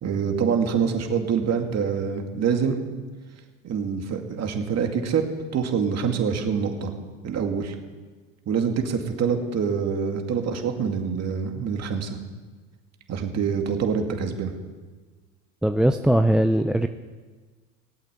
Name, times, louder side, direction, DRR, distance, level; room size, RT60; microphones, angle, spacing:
voice 1, 0.0-2.8 3.6-5.2 5.5-6.9 7.2-7.8 8.5-12.2 13.1-14.5, right 6 dB, 40° right, 4 dB, 2.3 m, -25 dB
voice 2, 15.6-16.9, right 1 dB, ahead, 8 dB, 0.5 m, -20 dB
18.5 x 8.5 x 8.3 m, 1.4 s
supercardioid pair, 100°, 38 cm